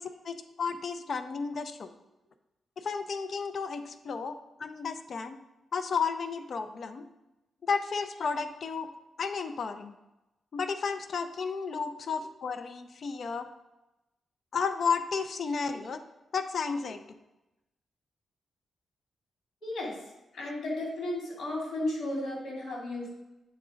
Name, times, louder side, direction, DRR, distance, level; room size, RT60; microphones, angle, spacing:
voice 1, 0.0-1.9 2.8-5.4 5.7-7.1 7.6-8.9 9.2-9.9 10.5-13.5 14.5-16.0 16.3-17.0, left 5 dB, 55° left, 9 dB, 0.5 m, -32 dB
voice 2, 19.6-20.0 20.4-23.1, left 1 dB, 75° left, -2 dB, 2.6 m, -34 dB
8.0 x 3.9 x 4.9 m, 0.97 s
cardioid pair, 100°, 0 cm